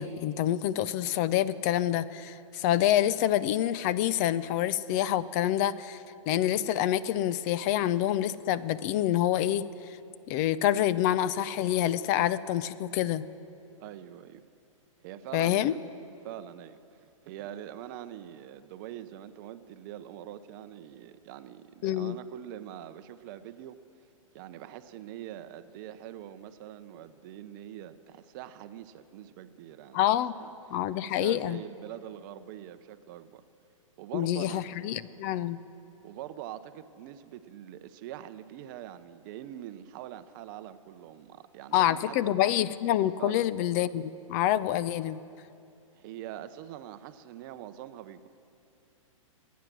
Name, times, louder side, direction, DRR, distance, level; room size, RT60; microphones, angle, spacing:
voice 1, 0.0-6.0 6.3-9.7 10.3-13.3 15.3-15.7 21.8-22.2 29.9-30.4 30.7-31.6 34.1-35.6 41.7-45.2, left 12 dB, 30° left, 16 dB, 0.4 m, -27 dB
voice 2, 13.8-14.4 15.0-15.8 16.2-16.8 17.2-23.8 24.3-30.0 30.4-30.5 31.0-33.4 34.0-34.6 36.0-42.3 43.2-43.5 45.9-48.3, right 12 dB, 35° right, 11 dB, 0.7 m, -43 dB
24.0 x 9.3 x 6.1 m, 2.6 s
hypercardioid pair, 145°, 17 cm